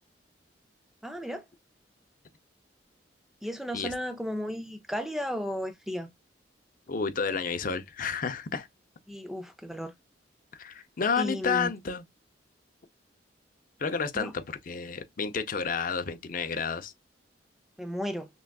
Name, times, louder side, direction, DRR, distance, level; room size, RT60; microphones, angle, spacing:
voice 1, 1.0-1.5 3.4-6.1 9.1-9.9 11.2-11.7 14.1-14.3 17.8-18.3, equal, ahead, 0.4 m, -34 dB
voice 2, 6.9-8.7 10.5-12.0 13.8-16.9, left 5 dB, 45° left, 0.5 m, -31 dB
6.1 x 2.3 x 2.3 m
head